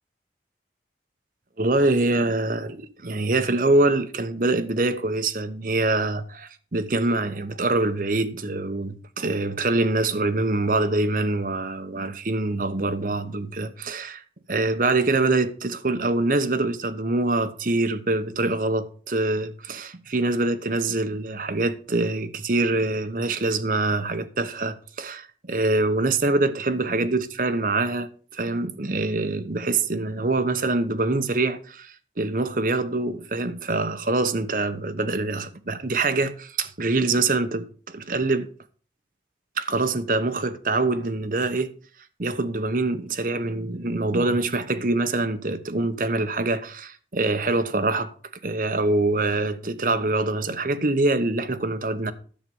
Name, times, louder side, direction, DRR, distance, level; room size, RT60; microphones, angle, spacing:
voice 1, 1.6-14.2 14.5-38.5 39.6-41.7 42.2-48.1 48.4-52.1, right 2 dB, 50° right, 0.9 m, -24 dB
10.5 x 7.6 x 5.4 m
head